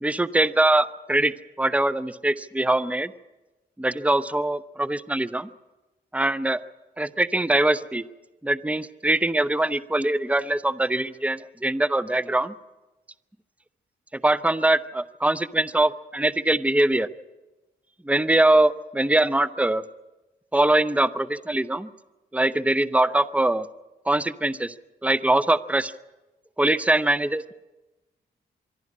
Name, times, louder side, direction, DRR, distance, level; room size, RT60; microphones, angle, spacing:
voice 1, 0.0-3.1 3.8-5.5 6.1-6.6 7.0-8.0 8.4-12.5 14.1-17.1 18.0-19.8 20.5-21.9 22.3-23.7 24.1-24.7 25.0-25.9 26.6-27.5, right 1 dB, 5° right, 17 dB, 0.8 m, -22 dB
25.0 x 12.5 x 9.8 m, 1.1 s
supercardioid pair, 40°, 21 cm